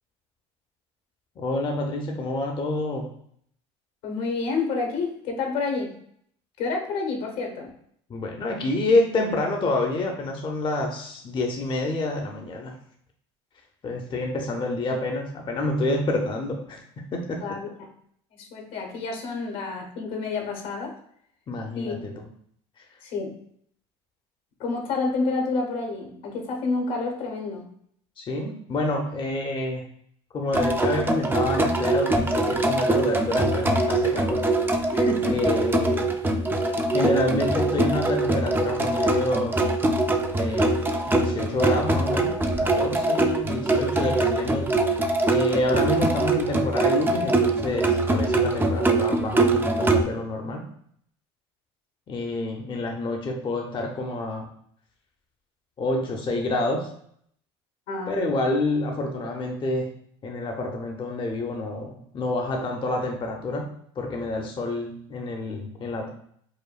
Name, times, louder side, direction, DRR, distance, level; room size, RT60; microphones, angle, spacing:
voice 1, 1.4-3.1 8.1-12.8 13.8-16.8 17.1-17.4 21.5-22.1 28.2-29.8 30.3-34.4 35.3-36.1 36.9-39.6 40.3-40.8 41.1-44.7 45.3-50.7 52.1-54.5 55.8-56.9 58.1-59.9 60.2-63.7 64.0-66.1, left 2 dB, 35° left, 2 dB, 0.7 m, -28 dB
voice 2, 4.0-5.9 6.6-7.7 17.4-17.9 18.3-20.9 21.7-21.9 23.0-23.3 24.6-27.7 34.9-35.4 57.9-58.2, left 3 dB, 70° left, 3 dB, 1.1 m, -29 dB
sound 1, 30.5-50.0, right 2 dB, 15° right, 0.5 m, -23 dB
4.9 x 2.2 x 2.4 m, 0.65 s
supercardioid pair, 85°, 15 cm